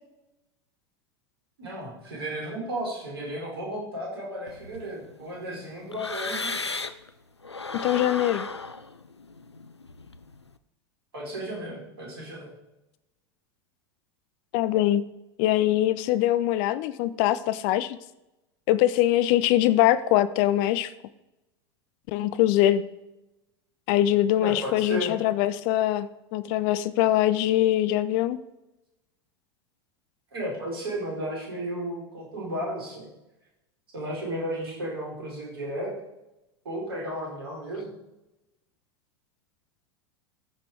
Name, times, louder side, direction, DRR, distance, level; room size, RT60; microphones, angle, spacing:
voice 1, 1.6-6.6 11.1-12.5 24.4-25.1 30.3-33.1 33.9-35.9 36.6-37.9, right 1 dB, 65° right, -3 dB, 4.8 m, -34 dB
sound 1, 4.5-7.1 7.4-10.5, left 3 dB, 85° left, 0.5 m, -36 dB
voice 2, 7.8-8.5 14.5-15.0 15.4-18.0 18.7-20.9 22.1-22.8 23.9-28.4, left 13 dB, 45° left, 14 dB, 0.6 m, -23 dB
14.5 x 6.0 x 4.8 m, 0.93 s
figure-of-eight pair, 85°, 14 cm